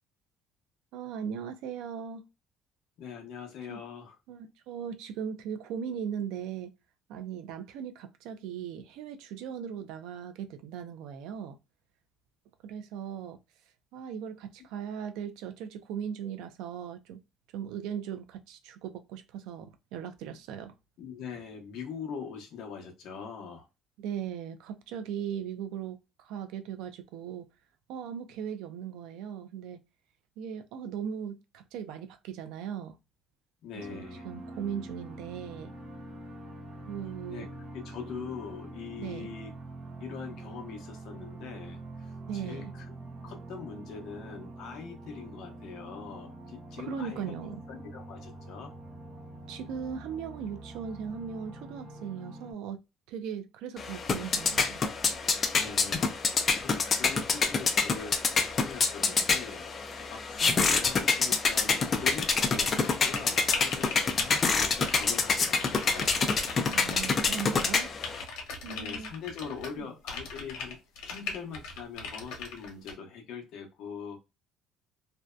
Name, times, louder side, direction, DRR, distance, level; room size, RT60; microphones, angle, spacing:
voice 1, 0.9-2.3 3.7-3.8 4.3-6.7 7.1-11.6 12.6-13.4 13.9-17.2 17.5-20.8 24.0-27.5 27.9-29.8 30.4-33.0 33.9-35.7 36.9-37.5 39.0-39.3 42.3-42.7 46.8-47.6 49.5-54.8 66.7-67.9 68.6-69.1 69.8-69.9, right 8 dB, 80° right, 0.4 m, -38 dB
voice 2, 3.0-4.2 21.0-23.7 33.6-34.3 37.3-37.5 37.7-39.5 40.0-42.9 43.2-47.3 47.7-48.7 55.5-59.7 60.1-66.1 68.6-74.2, left 6 dB, 55° left, 0.7 m, -42 dB
sound 1, 33.8-52.5, right 2 dB, 30° right, 0.6 m, -45 dB
sound 2, 53.8-68.2, left 4 dB, 25° left, 0.3 m, -27 dB
sound 3, 62.0-65.2 65.4-67.3 67.6-69.8 70.1-72.9, left 4 dB, 90° left, 0.9 m, -39 dB
2.6 x 2.1 x 2.3 m
cardioid pair, 175°, 0 cm